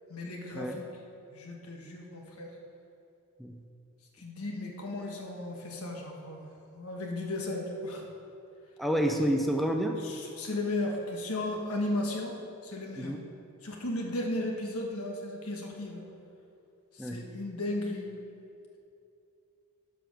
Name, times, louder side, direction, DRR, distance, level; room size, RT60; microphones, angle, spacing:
voice 1, 0.1-0.8 1.3-2.5 4.2-8.0 10.0-12.3 12.6-13.1 13.6-16.0 16.9-18.1, left 1 dB, 75° left, 1 dB, 1.4 m, -35 dB
voice 2, 8.8-10.0 13.0-13.2 17.0-17.3, equal, ahead, 2 dB, 0.4 m, -29 dB
11.0 x 5.0 x 6.3 m, 2.7 s
head